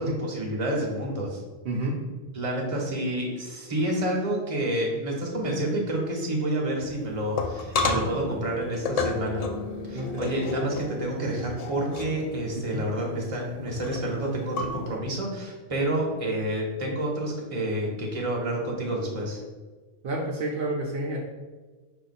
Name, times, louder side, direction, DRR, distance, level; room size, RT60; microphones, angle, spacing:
voice 1, 0.0-1.4 2.3-9.5 9.9-19.4, right 1 dB, 35° right, -2 dB, 1.0 m, -29 dB
voice 2, 1.6-2.0 7.9-8.2 9.9-10.3 12.7-12.8 20.0-21.2, right 1 dB, 70° right, -1 dB, 0.8 m, -30 dB
sound 1, 6.8-15.0, left 3 dB, 50° left, 0.5 m, -32 dB
5.0 x 2.7 x 4.0 m, 1.3 s
omnidirectional pair, 1.1 m